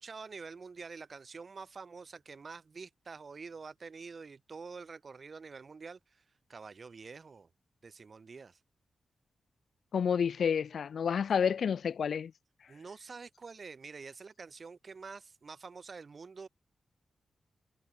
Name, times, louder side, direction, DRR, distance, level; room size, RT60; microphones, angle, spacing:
voice 1, 0.0-6.2 6.5-7.5 7.8-8.6 12.7-16.5, right 4 dB, 50° right, 7.0 m, -47 dB
voice 2, 9.9-12.3, left 7 dB, 75° left, 0.8 m, -29 dB
cardioid pair, 80°, 0 cm